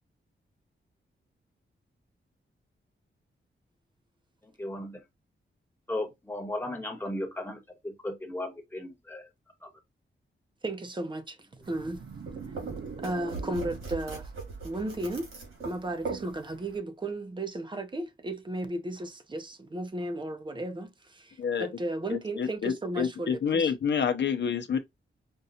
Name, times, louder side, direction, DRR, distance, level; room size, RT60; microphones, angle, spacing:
voice 1, 4.4-5.0 5.9-9.3 9.6-9.7, left 1 dB, 10° left, 1.1 m, -36 dB
voice 2, 10.6-11.4 11.7-12.0 13.0-14.3 14.6-15.3 15.6-21.3 21.6-23.7, right 1 dB, 25° right, 0.6 m, -34 dB
sound 1, 11.5-14.1, right 5 dB, 65° right, 0.6 m, -42 dB
sound 2, 11.6-16.8, right 4 dB, 85° right, 2.0 m, -41 dB
voice 3, 22.1-24.8, left 7 dB, 60° left, 0.6 m, -28 dB
5.3 x 2.3 x 2.7 m
wide cardioid pair, 145°, 21 cm